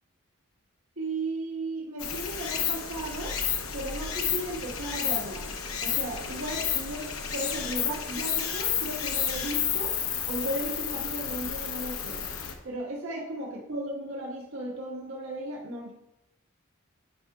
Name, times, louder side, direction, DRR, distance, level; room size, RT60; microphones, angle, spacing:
voice 1, 1.0-3.4 3.7-5.5 5.8-9.9 10.3-12.2 12.6-15.9, right 1 dB, 90° right, -4 dB, 1.5 m, -35 dB
Stream, 2.0-12.5, left 8 dB, 80° left, 0.8 m, -31 dB
11.5 x 4.9 x 2.4 m, 0.85 s
head